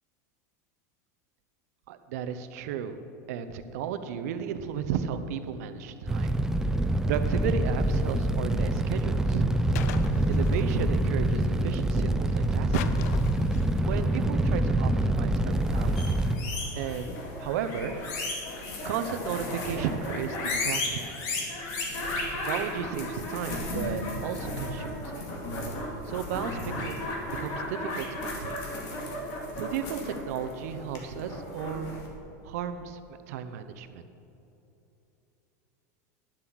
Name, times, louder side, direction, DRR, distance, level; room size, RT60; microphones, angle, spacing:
voice 1, 1.9-3.0 3.3-6.4 7.0-9.5 10.3-12.8 13.8-16.2 16.7-18.0 18.8-21.1 22.3-25.3 26.0-28.6 29.6-32.0 32.4-34.0, right 8 dB, 70° right, 10 dB, 0.8 m, -34 dB
Fire, 6.1-16.4, right 1 dB, 5° right, 0.4 m, -26 dB
sound 1, 9.7-10.7 12.7-13.9, left 9 dB, 70° left, 0.6 m, -40 dB
sound 2, 15.6-32.1, left 2 dB, 45° left, 2.3 m, -35 dB
11.0 x 7.6 x 6.1 m, 3.0 s
supercardioid pair, 155°, 9 cm